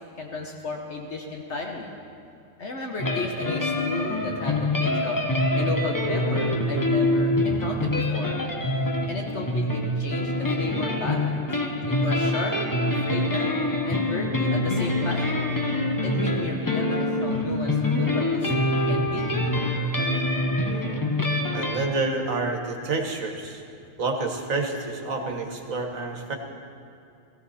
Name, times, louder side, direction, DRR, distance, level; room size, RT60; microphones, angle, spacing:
voice 1, 0.2-1.9 2.6-5.2 5.5-8.4 9.1-11.4 11.9-12.6 13.0-13.5 13.9-15.5 16.0-19.4 22.8-22.9, left 3 dB, 60° left, 1 dB, 1.4 m, -33 dB
sound 1, 3.0-21.8, left 1 dB, 15° left, 0.9 m, -25 dB
voice 2, 20.6-21.2 21.5-23.6 24.0-26.4, right 3 dB, 80° right, 2 dB, 1.9 m, -29 dB
18.0 x 16.0 x 4.2 m, 2.6 s
omnidirectional pair, 1.4 m